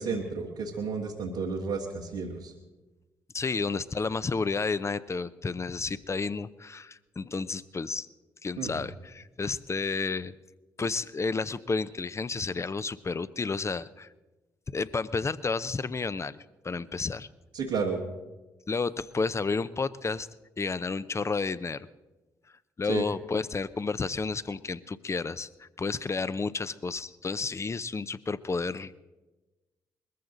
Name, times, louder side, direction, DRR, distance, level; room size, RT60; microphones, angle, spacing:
voice 1, 0.0-2.5 8.6-8.8 17.5-18.0 22.8-23.0, right 5 dB, 85° right, -3 dB, 1.6 m, -32 dB
voice 2, 3.3-8.1 8.4-10.3 10.8-14.1 14.7-16.4 16.6-17.3 18.7-20.3 20.6-21.9 22.8-28.9, left 4 dB, 30° left, 16 dB, 0.7 m, -31 dB
21.0 x 14.5 x 3.9 m, 1.1 s
hypercardioid pair, 45°, 9 cm